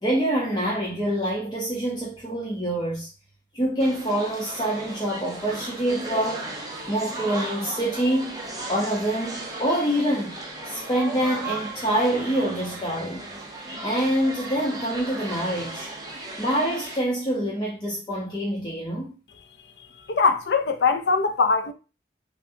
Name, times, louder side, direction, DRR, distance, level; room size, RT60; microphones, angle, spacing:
voice 1, 0.0-3.1 3.5-6.5 6.9-8.3 8.7-10.4 10.7-13.2 13.8-15.9 16.4-19.1, right 1 dB, 25° left, 0.9 m, -26 dB
sound 1, 3.8-17.0, right 2 dB, 20° right, 0.7 m, -36 dB
voice 2, 20.1-21.7, left 4 dB, 70° left, 0.5 m, -21 dB
5.9 x 2.3 x 2.7 m
head